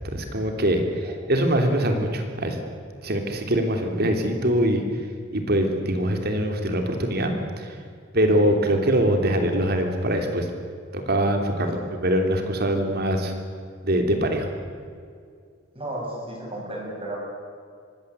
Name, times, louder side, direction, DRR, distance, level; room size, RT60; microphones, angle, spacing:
voice 1, 0.0-2.6 3.0-4.8 5.3-7.7 8.1-10.5 10.9-13.3 13.8-14.5, right 1 dB, 55° right, 4 dB, 3.3 m, -23 dB
voice 2, 15.7-17.2, right 1 dB, 30° right, -3 dB, 7.7 m, -33 dB
25.5 x 19.5 x 8.4 m, 2.2 s
head